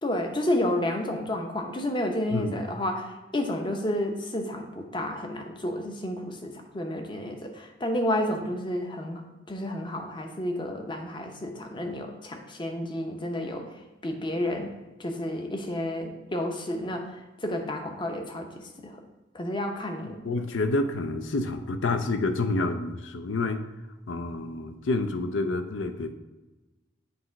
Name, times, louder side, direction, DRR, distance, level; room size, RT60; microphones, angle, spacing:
voice 1, 0.0-13.7 14.0-14.7 15.0-19.0 19.3-20.2, left 1 dB, 25° left, 3 dB, 0.7 m, -31 dB
voice 2, 20.2-23.6 24.1-26.1, left 2 dB, 75° left, 8 dB, 0.5 m, -28 dB
7.9 x 3.0 x 4.5 m, 1.1 s
head